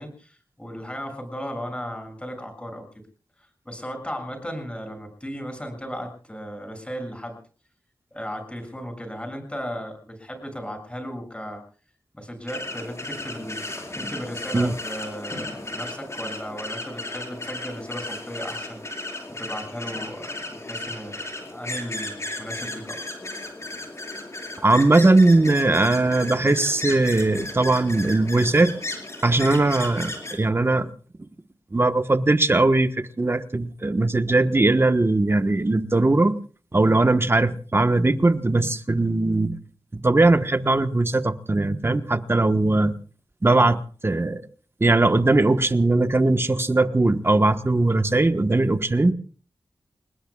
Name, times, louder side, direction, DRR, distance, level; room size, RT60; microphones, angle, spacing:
voice 1, 0.0-2.9 3.7-7.4 8.1-11.6 12.1-13.6 13.9-18.8 19.3-23.1, equal, 15° left, 7.0 m, -36 dB
sound 1, 12.5-30.3, left 2 dB, 35° left, 5.0 m, -35 dB
voice 2, 24.6-28.7 29.2-30.9 31.7-32.9 33.2-36.3 36.7-39.6 39.9-42.9 43.4-44.4 44.8-49.1, right 2 dB, 30° right, 1.3 m, -20 dB
29.5 x 20.0 x 2.4 m
wide cardioid pair, 85°, 8 cm